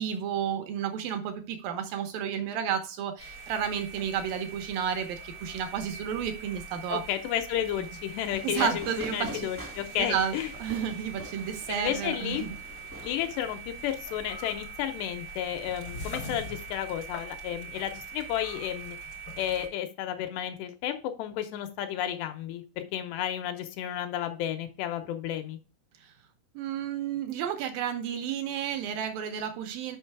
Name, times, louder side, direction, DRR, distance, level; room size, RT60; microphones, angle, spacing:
voice 1, 0.0-7.0 8.4-9.4 10.0-10.3 10.6-12.6 26.0-26.1 26.6-30.0, right 8 dB, 80° right, 7 dB, 2.1 m, -31 dB
sound 1, 3.2-19.7, right 3 dB, 65° left, 1.2 m, -43 dB
voice 2, 6.9-8.9 9.1-10.5 11.7-12.4 13.0-19.0 19.4-25.6, left 11 dB, 80° left, 7 dB, 2.9 m, -32 dB
Fireworks, 8.3-13.8, right 1 dB, 10° right, 0.5 m, -46 dB
6.4 x 5.4 x 4.6 m, 0.36 s
omnidirectional pair, 4.9 m